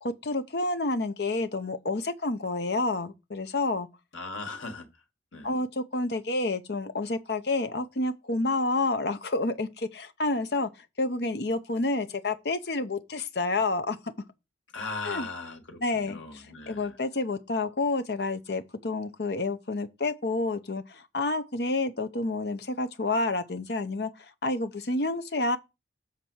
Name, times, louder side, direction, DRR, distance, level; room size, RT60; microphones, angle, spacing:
voice 1, 0.0-3.9 5.4-10.7 11.0-14.0 15.0-15.3 15.8-24.1 24.4-25.6, left 2 dB, 55° left, 0.8 m, -29 dB
voice 2, 4.1-4.9 5.3-5.5 14.7-17.0, left 3 dB, 90° left, 1.7 m, -38 dB
7.3 x 4.1 x 6.2 m
head